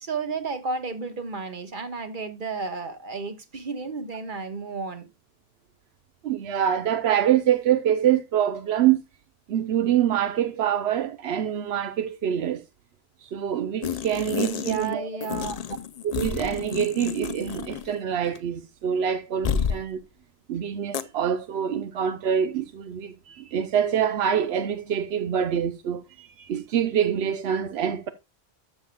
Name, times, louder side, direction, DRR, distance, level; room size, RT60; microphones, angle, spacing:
voice 1, 0.0-5.1 14.4-15.6, right 4 dB, 50° right, 1.4 m, -32 dB
voice 2, 6.2-9.0 9.5-12.6 13.2-15.1 16.0-20.0 20.5-28.1, right 9 dB, 85° right, 0.9 m, -25 dB
sound 1, 13.8-14.9 15.2-18.0 18.2-18.4 19.4-19.8 20.9-21.0, left 7 dB, 45° left, 0.6 m, -30 dB
13.0 x 7.0 x 2.3 m
omnidirectional pair, 1.1 m